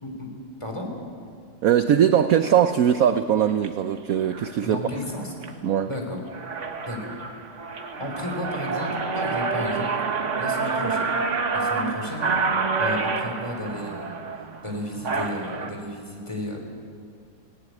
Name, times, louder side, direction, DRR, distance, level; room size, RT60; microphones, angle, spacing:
voice 1, 0.6-0.9 4.6-5.6 5.8-6.2 6.9-7.2 8.0-10.0 10.4-11.1 11.5-12.3 12.8-14.2 14.6-16.6, left 1 dB, 15° left, 1 dB, 3.6 m, -33 dB
voice 2, 1.6-4.8 5.6-5.9, right 9 dB, 65° right, 10 dB, 0.9 m, -20 dB
sound 1, 3.5-3.7 4.3-4.6 5.1-5.5 5.9-6.0 6.3-15.7, right 4 dB, 45° right, 1.5 m, -28 dB
18.5 x 18.0 x 9.5 m, 2.2 s
omnidirectional pair, 2.0 m